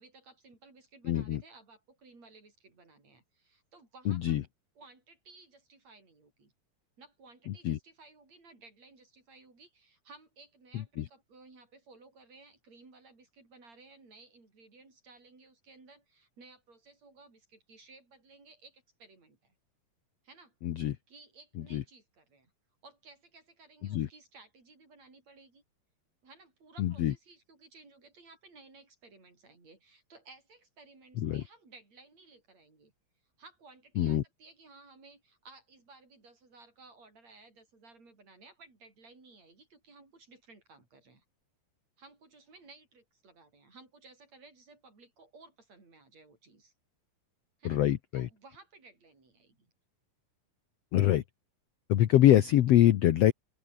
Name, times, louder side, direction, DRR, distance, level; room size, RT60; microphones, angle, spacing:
voice 1, 0.0-4.4 4.8-6.5 7.0-19.5 20.2-20.5 21.1-22.5 22.8-25.6 26.2-32.9 33.4-41.2 42.0-46.7 47.6-47.8 48.1-49.7, right 3 dB, 50° right, 8.0 m, -57 dB
voice 2, 1.0-1.4 4.1-4.4 7.5-7.8 10.7-11.1 20.6-21.0 21.7-21.8 23.8-24.1 26.8-27.1 31.2-31.4 34.0-34.2 47.6-48.3 50.9-51.2 51.9-53.3, left 12 dB, 70° left, 1.6 m, -25 dB
open air
omnidirectional pair, 4.0 m